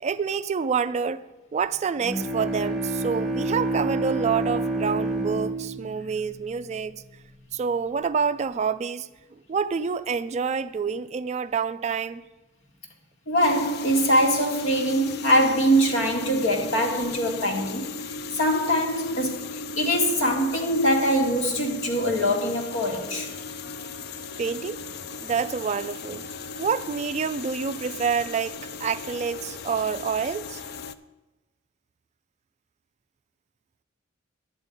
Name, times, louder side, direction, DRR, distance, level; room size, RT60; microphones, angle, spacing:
voice 1, 0.0-1.2 1.5-7.0 7.5-9.1 9.5-12.2 24.4-24.8 25.2-26.2 26.6-30.6, right 6 dB, 35° right, 0.3 m, -27 dB
Bowed string instrument, 2.0-7.1, right 2 dB, ahead, 0.9 m, -29 dB
voice 2, 13.3-23.3, equal, 70° left, 1.9 m, -23 dB
sound 1, 13.4-30.9, left 4 dB, 55° left, 0.5 m, -36 dB
11.0 x 9.0 x 5.1 m
head